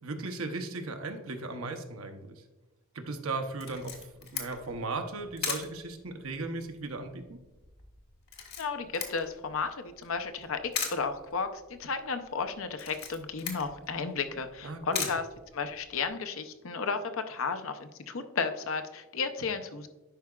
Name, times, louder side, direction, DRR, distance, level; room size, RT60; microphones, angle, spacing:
voice 1, 0.0-2.4 2.9-4.0 4.3-7.4 14.6-15.1, right 3 dB, 80° right, 5 dB, 0.8 m, -36 dB
Camera, 3.6-16.1, left 6 dB, 50° left, 1.2 m, -41 dB
voice 2, 8.6-15.2 15.5-19.9, left 5 dB, 65° left, 8 dB, 0.6 m, -33 dB
10.0 x 4.8 x 2.3 m, 1.1 s
head